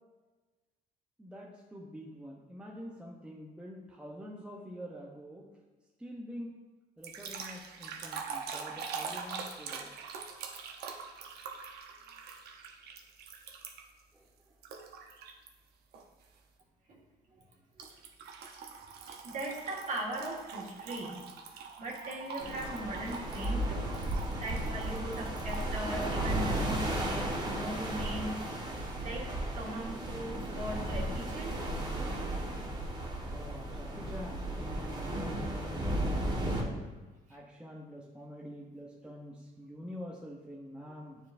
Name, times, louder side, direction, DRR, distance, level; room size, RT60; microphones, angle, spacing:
voice 1, 1.2-5.5 6.0-6.6 7.0-9.9 14.1-14.2 19.1-19.2 33.3-35.8 36.2-36.8 37.3-41.2, equal, 5° right, -2 dB, 0.7 m, -46 dB
sound 1, 7.0-14.0 14.6-15.5 15.9-16.2 17.8-25.7, right 5 dB, 70° right, 0.9 m, -43 dB
voice 2, 19.2-21.2 21.8-23.9 24.4-29.2 29.5-31.5, right 1 dB, 45° right, -2 dB, 1.7 m, -39 dB
sound 2, 22.4-36.6, right 1 dB, 25° right, 1.3 m, -34 dB
9.3 x 4.5 x 2.6 m, 1.3 s
cardioid pair, 110°, 17 cm